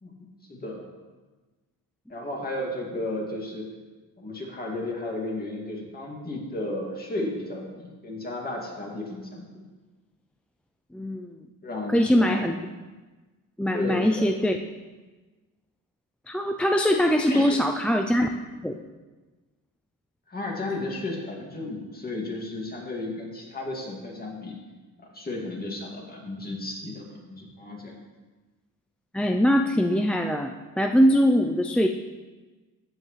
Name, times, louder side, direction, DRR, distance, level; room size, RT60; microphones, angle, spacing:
voice 1, 0.0-0.9 2.1-3.7 4.2-9.6 11.6-12.5 13.7-14.3 17.2-17.6 20.3-24.6 25.0-28.0, left 2 dB, 25° left, -1 dB, 2.3 m, -34 dB
voice 2, 10.9-11.3 11.9-12.5 13.6-14.6 16.3-18.3 18.6-18.7 29.1-31.9, equal, 5° left, 4 dB, 0.3 m, -22 dB
14.5 x 8.0 x 3.2 m, 1.3 s
cardioid pair, 120°, 36 cm